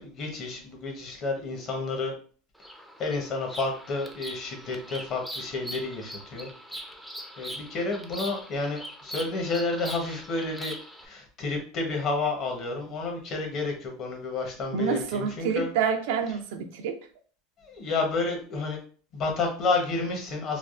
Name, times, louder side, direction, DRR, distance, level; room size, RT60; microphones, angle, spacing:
voice 1, 0.0-2.1 3.0-6.5 7.4-10.8 11.0-15.7 17.6-18.8 19.1-20.6, left 3 dB, 45° left, 2 dB, 0.9 m, -30 dB
Bird vocalization bird call bird song, 2.6-11.1, equal, ahead, 0.4 m, -41 dB
voice 2, 14.7-17.0, right 7 dB, 75° right, 6 dB, 0.4 m, -28 dB
3.3 x 2.3 x 2.4 m, 0.43 s
supercardioid pair, 120°, 0 cm